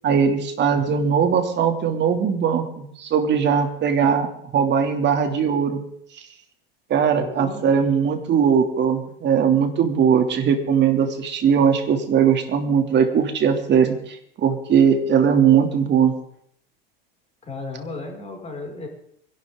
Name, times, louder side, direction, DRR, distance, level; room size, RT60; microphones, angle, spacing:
voice 1, 0.0-5.8 6.9-16.1, right 7 dB, 40° right, 5 dB, 3.0 m, -20 dB
voice 2, 7.1-7.7 17.4-18.9, left 3 dB, 20° left, 0 dB, 6.3 m, -34 dB
24.5 x 11.5 x 3.9 m, 0.68 s
hypercardioid pair, 95°, 29 cm